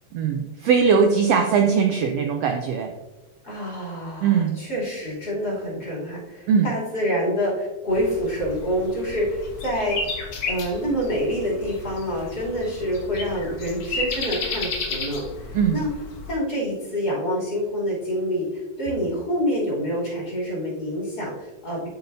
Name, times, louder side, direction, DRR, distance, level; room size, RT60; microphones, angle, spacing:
voice 1, 0.1-2.9 4.2-4.6 6.5-6.7 15.5-15.8, right 6 dB, 75° right, 4 dB, 1.5 m, -20 dB
voice 2, 3.4-15.9 16.3-21.9, equal, 30° left, -6 dB, 3.1 m, -27 dB
sound 1, 7.9-16.3, left 3 dB, 55° left, 1.2 m, -33 dB
12.0 x 6.0 x 2.6 m, 1.1 s
omnidirectional pair, 3.5 m